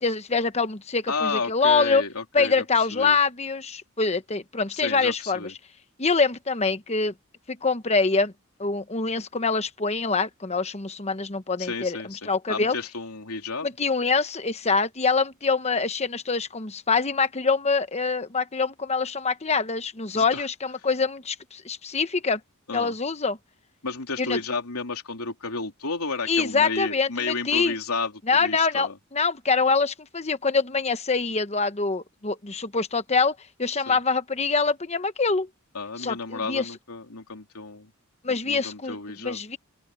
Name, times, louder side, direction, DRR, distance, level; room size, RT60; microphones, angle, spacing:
voice 1, 0.0-2.0 2.3-5.4 6.0-7.1 7.5-8.3 8.6-12.0 12.3-12.8 13.6-22.4 22.7-23.4 24.2-24.4 26.3-27.7 28.3-35.5 36.0-36.7 38.2-39.0 39.2-39.6, left 4 dB, 30° left, 1.1 m, -25 dB
voice 2, 1.1-2.6 2.9-3.2 4.7-5.5 11.6-13.7 20.1-20.5 22.7-22.9 23.8-29.0 33.9-34.0 35.7-37.9 38.3-39.4, left 4 dB, 80° left, 3.4 m, -32 dB
open air
head